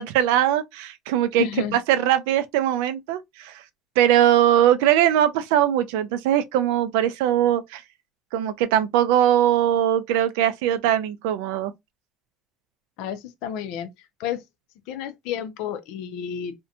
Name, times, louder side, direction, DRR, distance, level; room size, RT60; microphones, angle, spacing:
voice 1, 0.0-1.5 1.7-3.6 4.0-7.8 8.3-11.7, right 11 dB, 85° right, 0.3 m, -21 dB
voice 2, 1.4-1.8 13.0-13.9 14.2-14.4 14.9-16.5, left 9 dB, 65° left, 0.4 m, -30 dB
2.6 x 2.1 x 2.5 m
cardioid pair, 160°, 0 cm